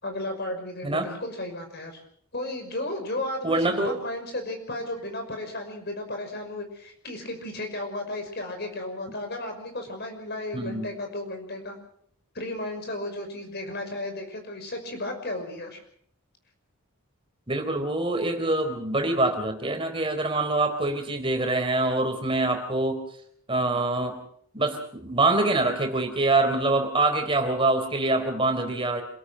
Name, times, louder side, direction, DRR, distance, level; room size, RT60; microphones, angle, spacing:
voice 1, 0.0-2.0 2.3-11.7 12.3-15.8, left 1 dB, 45° left, 5 dB, 5.8 m, -34 dB
voice 2, 3.4-4.0 10.5-10.9 17.5-23.0 23.5-24.2 24.5-29.0, right 2 dB, 25° right, 5 dB, 3.8 m, -25 dB
27.5 x 17.5 x 6.4 m, 0.64 s
head